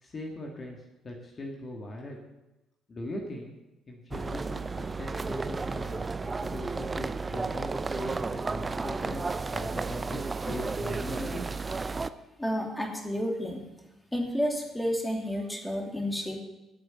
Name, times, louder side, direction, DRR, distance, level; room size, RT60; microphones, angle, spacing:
voice 1, 0.0-2.2 2.9-3.6 3.9-11.4, left 1 dB, 35° left, 0 dB, 2.2 m, -40 dB
sound 1, 4.1-12.1, right 4 dB, 25° right, 0.6 m, -33 dB
voice 2, 12.4-13.7 14.1-16.4, equal, 10° left, 1 dB, 2.8 m, -31 dB
20.0 x 8.6 x 4.3 m, 0.99 s
figure-of-eight pair, 45°, 0 cm